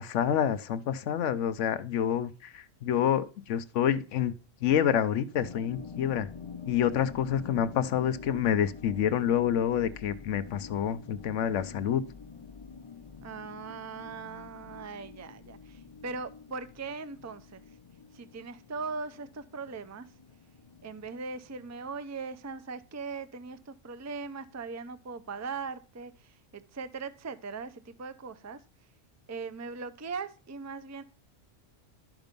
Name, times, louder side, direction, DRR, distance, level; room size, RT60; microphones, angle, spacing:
voice 1, 0.0-4.3 4.6-6.3 6.7-12.0, left 9 dB, 75° left, 1.0 m, -28 dB
sound 1, 5.4-22.0, left 5 dB, 35° left, 0.4 m, -47 dB
voice 2, 13.2-17.6 18.1-20.1 20.8-28.6 29.3-31.0, right 4 dB, 20° right, 0.4 m, -40 dB
11.5 x 6.1 x 5.2 m
omnidirectional pair, 1.3 m